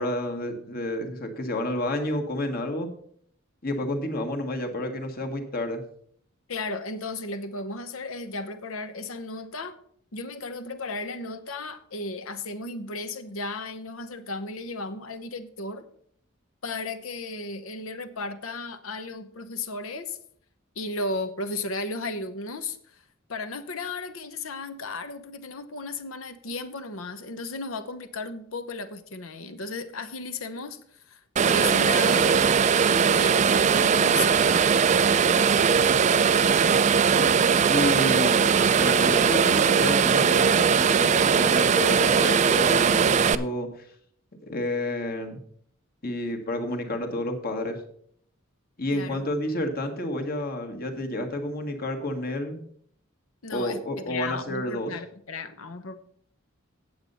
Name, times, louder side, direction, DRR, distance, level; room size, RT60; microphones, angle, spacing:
voice 1, 0.0-2.9 3.6-5.8 37.1-43.9 44.4-45.4 46.0-47.8 48.8-52.6 53.5-54.9, left 1 dB, 45° left, 4 dB, 1.6 m, -30 dB
voice 2, 6.5-9.8 10.1-15.9 16.6-20.2 20.7-23.0 23.3-32.3 33.1-34.4 48.9-49.3 53.4-56.0, left 3 dB, 75° left, 11 dB, 1.0 m, -35 dB
sound 1, 31.4-43.4, right 6 dB, 35° right, 0.3 m, -20 dB
8.8 x 7.9 x 5.5 m, 0.63 s
head